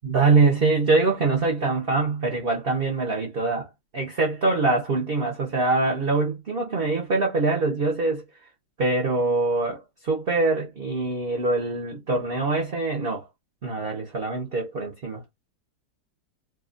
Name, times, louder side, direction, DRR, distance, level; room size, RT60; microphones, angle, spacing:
voice 1, 0.0-8.2 8.8-13.2 13.6-15.2, right 3 dB, 55° right, 0.6 m, -24 dB
2.8 x 2.2 x 3.7 m
omnidirectional pair, 1.9 m